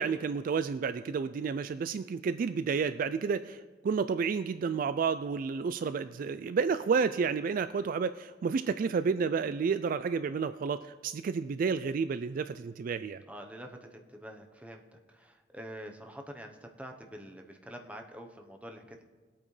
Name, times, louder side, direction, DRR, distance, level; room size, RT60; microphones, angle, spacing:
voice 1, 0.0-13.2, right 5 dB, 50° right, 13 dB, 0.3 m, -31 dB
voice 2, 13.3-19.0, equal, 10° right, 3 dB, 0.9 m, -46 dB
21.0 x 8.7 x 3.3 m, 1.4 s
head